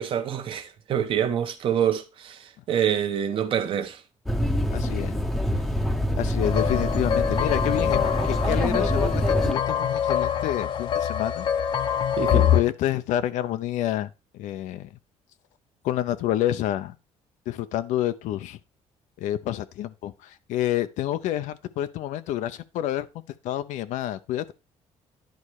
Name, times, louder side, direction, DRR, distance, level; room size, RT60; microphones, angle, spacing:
voice 1, 0.0-4.0 12.1-12.5, right 9 dB, 45° right, 1.0 m, -26 dB
sound 1, 4.3-9.5, equal, ahead, 0.7 m, -25 dB
voice 2, 4.7-5.2 6.2-11.5 12.2-14.9 15.8-16.9 17.5-18.6 19.2-23.1 23.4-24.5, left 12 dB, 90° left, 0.7 m, -28 dB
sound 2, 6.4-12.6, left 9 dB, 40° left, 0.7 m, -25 dB
10.5 x 4.3 x 4.8 m
cardioid pair, 175°, 12 cm